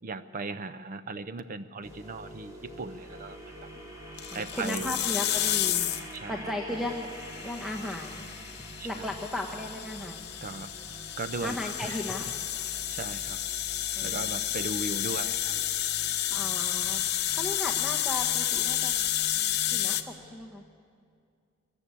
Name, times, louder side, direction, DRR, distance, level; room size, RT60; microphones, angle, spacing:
voice 1, 0.0-3.7 4.3-4.9 6.1-6.6 8.8-9.2 10.4-10.7 11.2-12.3 12.6-13.4 14.0-15.5, right 3 dB, 40° right, 11 dB, 0.5 m, -38 dB
sound 1, 1.8-19.9, equal, 15° right, 3.0 m, -46 dB
sound 2, 4.2-6.2 7.2-20.0, left 12 dB, 50° left, 0.8 m, -31 dB
voice 2, 4.3-5.9 6.3-7.1 7.4-8.3 8.5-10.2 11.4-12.3 13.9-14.4 16.3-17.1 17.3-18.9 19.7-20.6, left 1 dB, ahead, 1 dB, 1.1 m, -36 dB
23.0 x 14.0 x 8.3 m, 2.3 s
head